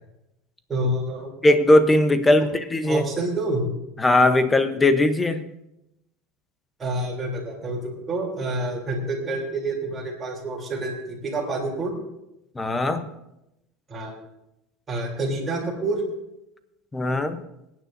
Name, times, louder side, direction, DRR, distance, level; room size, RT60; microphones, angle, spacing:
voice 1, 0.7-1.3 2.9-3.6 6.8-12.0 13.9-14.1 14.9-16.0, right 2 dB, 20° right, -3 dB, 3.2 m, -28 dB
voice 2, 1.4-3.0 4.0-5.4 12.6-13.1 16.9-17.4, left 1 dB, 10° left, 10 dB, 0.8 m, -19 dB
26.0 x 9.3 x 2.7 m, 0.89 s
supercardioid pair, 150°, 0 cm